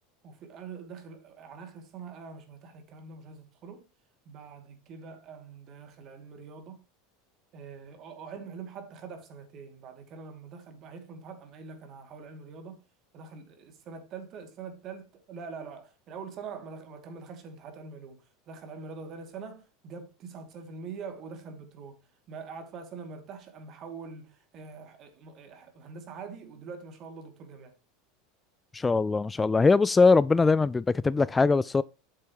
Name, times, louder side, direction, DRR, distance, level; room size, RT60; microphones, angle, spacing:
voice 1, 0.2-3.9 4.2-6.8 7.5-12.8 13.1-22.0 22.3-27.7, right 5 dB, 45° right, 2.6 m, -44 dB
voice 2, 28.7-31.8, left 4 dB, 15° left, 0.3 m, -22 dB
8.7 x 7.4 x 3.1 m
hypercardioid pair, 95°, 0 cm